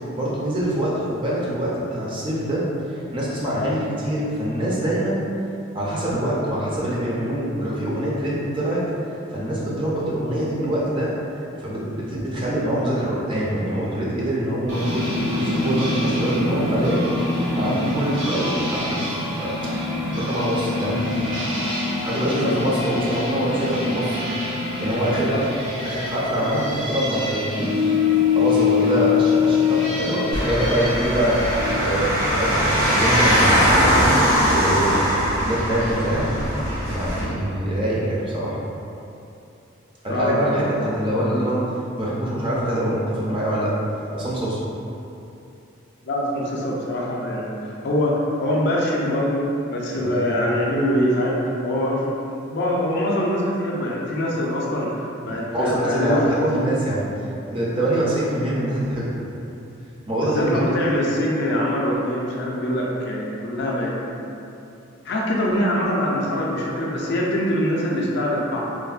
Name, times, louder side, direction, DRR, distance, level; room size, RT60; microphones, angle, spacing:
voice 1, 0.1-2.6 3.1-5.2 5.7-8.8 9.3-17.0 17.6-19.8 20.1-21.0 22.0-24.2 24.8-25.3 25.8-27.7 28.3-31.4 31.8-36.3 36.9-38.6 40.0-41.6 42.0-43.7 44.1-44.6 50.0-50.2 55.3-57.1 57.5-59.2 60.1-60.6, right 1 dB, 25° right, -7 dB, 0.4 m, -24 dB
sound 1, 14.7-31.8, left 4 dB, 55° right, 0.7 m, -24 dB
voice 2, 22.2-22.6 25.3-25.5 40.1-40.8 46.0-52.2 52.5-56.4 60.2-64.3 65.0-68.8, equal, 50° left, -3 dB, 0.3 m, -24 dB
sound 2, 30.3-37.2, equal, 85° right, 1.1 m, -20 dB
3.2 x 2.1 x 2.3 m, 2.7 s
head